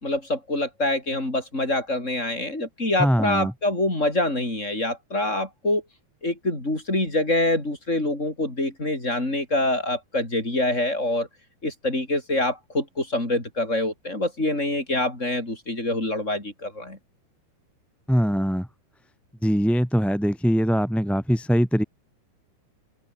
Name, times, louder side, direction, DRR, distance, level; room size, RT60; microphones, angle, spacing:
voice 1, 0.0-5.8 6.2-11.3 11.6-17.0, left 1 dB, 15° left, 5.8 m, -25 dB
voice 2, 3.0-3.5 18.1-18.7 19.4-21.8, equal, ahead, 2.1 m, -22 dB
open air
omnidirectional pair, 4.7 m